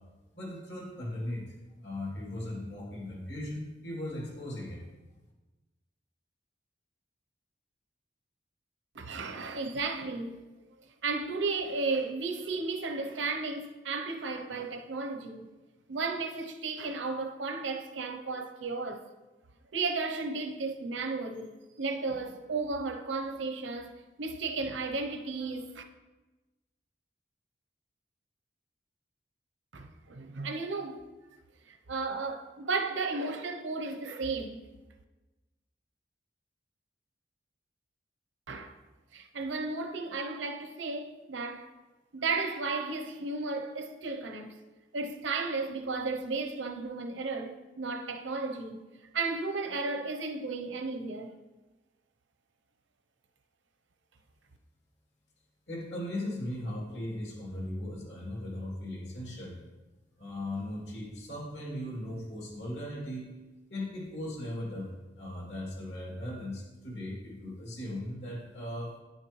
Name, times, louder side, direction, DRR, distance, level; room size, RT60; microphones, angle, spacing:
voice 1, 0.3-1.5 1.8-4.8 55.7-59.6 60.2-63.3 63.7-64.9 65.2-69.0, left 1 dB, 70° left, 2.5 m, -38 dB
voice 2, 8.9-10.4 11.0-15.5 15.9-19.1 19.7-25.8 29.7-31.0 31.7-34.6 38.5-38.8 39.1-41.7 42.1-44.6 44.9-48.8 49.1-51.3, right 3 dB, 80° right, 0.7 m, -34 dB
9.9 x 6.5 x 3.1 m
head